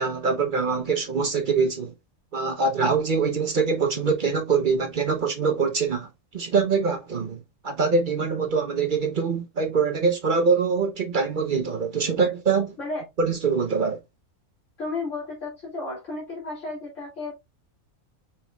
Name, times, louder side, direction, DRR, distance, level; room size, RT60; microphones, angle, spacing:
voice 1, 0.0-1.9 2.3-12.8 13.2-14.0, right 5 dB, 50° right, 0.7 m, -24 dB
voice 2, 14.8-17.3, left 3 dB, 60° left, 2.3 m, -33 dB
5.2 x 4.3 x 2.2 m
omnidirectional pair, 1.5 m